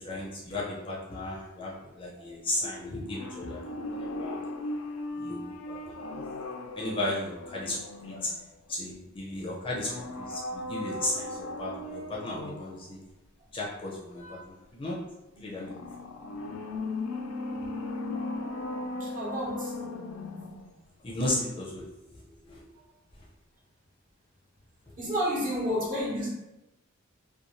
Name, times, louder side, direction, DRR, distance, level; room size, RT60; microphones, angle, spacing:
voice 1, 0.0-4.4 5.1-6.1 6.7-7.8 8.0-8.3 8.7-13.0 13.5-15.0 15.4-15.9 21.0-21.8 22.1-22.2 22.4-22.7, left 1 dB, 25° left, -5 dB, 0.5 m, -35 dB
sound 1, 3.0-8.7 9.8-12.8 15.6-20.8 21.1-21.2, left 2 dB, 90° left, 0.4 m, -37 dB
voice 2, 19.0-19.7 22.7-22.8 25.0-26.3, equal, 40° right, -6 dB, 0.9 m, -32 dB
2.5 x 2.2 x 2.9 m, 0.95 s
head